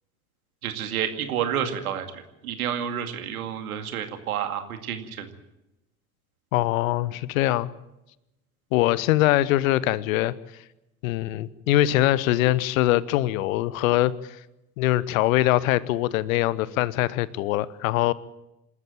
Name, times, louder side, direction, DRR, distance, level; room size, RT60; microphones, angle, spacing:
voice 1, 0.6-5.3, right 9 dB, 70° right, 7 dB, 2.3 m, -30 dB
voice 2, 6.5-7.7 8.7-10.3 11.0-14.1 14.8-18.1, left 15 dB, 60° left, 20 dB, 1.0 m, -22 dB
27.0 x 13.5 x 9.0 m, 0.94 s
figure-of-eight pair, 65°, 45 cm